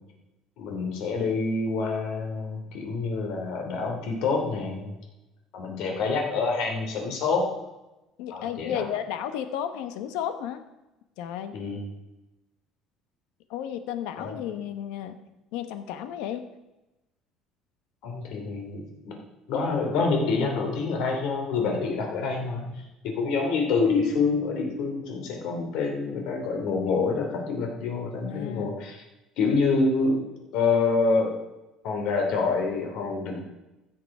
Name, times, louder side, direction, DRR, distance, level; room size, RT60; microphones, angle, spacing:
voice 1, 0.6-4.9 5.5-7.5 8.3-8.8 11.5-11.8 14.2-14.3 18.0-19.2 19.5-29.0 29.4-30.2 30.5-31.4 31.8-33.4, left 4 dB, 65° left, 2 dB, 3.0 m, -27 dB
voice 2, 8.2-10.6 11.2-11.6 13.5-15.2 15.5-16.5 28.2-28.8, left 10 dB, 85° left, 10 dB, 1.1 m, -33 dB
15.5 x 6.8 x 4.9 m, 0.98 s
cardioid pair, 155°, 0 cm